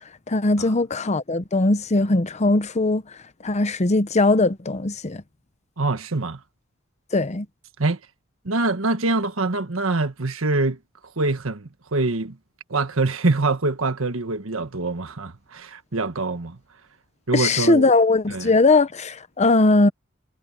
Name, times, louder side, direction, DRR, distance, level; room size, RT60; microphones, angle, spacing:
voice 1, 0.3-3.0 3.4-5.2 7.1-7.5 17.3-19.9, left 2 dB, 35° left, 0.8 m, -19 dB
voice 2, 5.8-6.4 7.8-8.0 8.4-10.8 11.2-12.4 12.7-16.6 17.3-17.9 18.3-18.5, right 2 dB, 80° right, 1.5 m, -24 dB
head